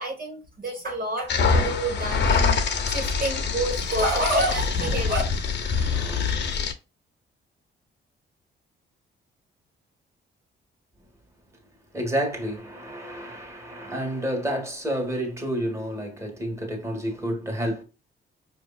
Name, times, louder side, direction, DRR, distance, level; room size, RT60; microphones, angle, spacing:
voice 1, 0.0-5.2, right 1 dB, 40° right, 1.2 m, -28 dB
sound 1, 1.3-6.7, left 5 dB, 55° left, 0.9 m, -24 dB
voice 2, 5.7-6.2 11.9-17.8, equal, 15° right, 1.7 m, -30 dB
5.0 x 2.8 x 2.4 m
cardioid pair, 85°, 21 cm